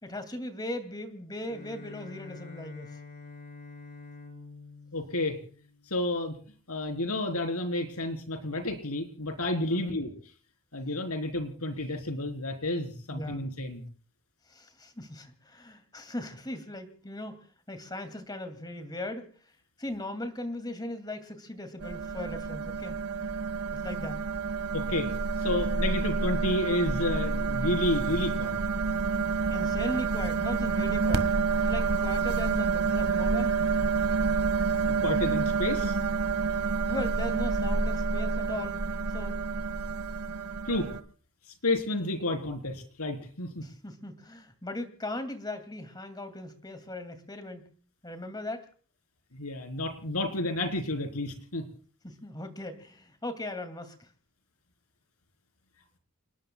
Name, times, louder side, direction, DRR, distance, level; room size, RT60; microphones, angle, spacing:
voice 1, 0.0-2.9 9.7-10.0 13.1-13.4 14.5-17.4 17.7-19.3 19.8-23.0 23.7-24.2 29.5-31.3 31.6-33.6 36.9-38.8 39.1-39.4 43.6-47.7 48.0-48.7 52.0-54.0, left 1 dB, 20° left, 9 dB, 2.4 m, -38 dB
Bowed string instrument, 1.5-6.2, left 4 dB, 40° left, 4.4 m, -47 dB
voice 2, 4.9-5.4 5.9-6.4 6.7-10.1 10.7-13.8 24.7-25.1 25.4-28.6 34.8-36.0 40.6-40.9 41.6-43.6 49.3-51.6, left 1 dB, 85° left, 6 dB, 3.8 m, -31 dB
sound 1, 21.8-41.0, right 4 dB, 80° right, 1.6 m, -28 dB
29.5 x 20.0 x 2.3 m, 0.43 s
head